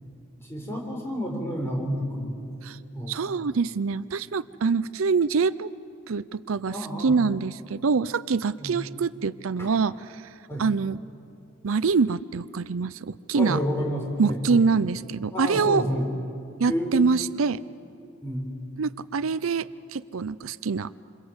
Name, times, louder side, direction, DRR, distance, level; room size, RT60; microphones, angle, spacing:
voice 1, 0.5-2.5 2.9-3.2 6.6-7.2 8.6-8.7 9.6-9.7 10.5-10.7 13.3-14.6 15.3-16.1 16.7-17.0 18.2-18.6, equal, 15° left, -1 dB, 5.8 m, -30 dB
voice 2, 3.1-5.7 6.1-9.9 10.6-11.0 11.6-13.6 14.2-15.8 16.6-17.6 18.8-20.9, right 5 dB, 80° right, 16 dB, 0.6 m, -25 dB
28.0 x 26.5 x 8.0 m, 2.5 s
head